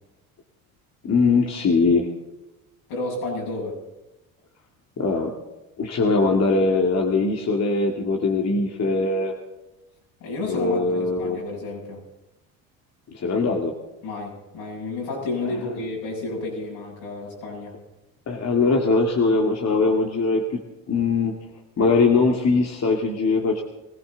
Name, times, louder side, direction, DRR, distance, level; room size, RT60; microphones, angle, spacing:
voice 1, 1.0-2.1 5.0-5.3 5.8-9.3 10.5-11.4 13.1-13.7 18.3-20.6 20.9-21.4 21.8-23.6, left 3 dB, 40° left, 1 dB, 2.1 m, -21 dB
voice 2, 2.9-3.8 10.2-12.0 14.0-17.7, left 2 dB, 70° left, -2 dB, 7.6 m, -31 dB
21.0 x 16.0 x 4.0 m, 0.99 s
supercardioid pair, 75°, 41 cm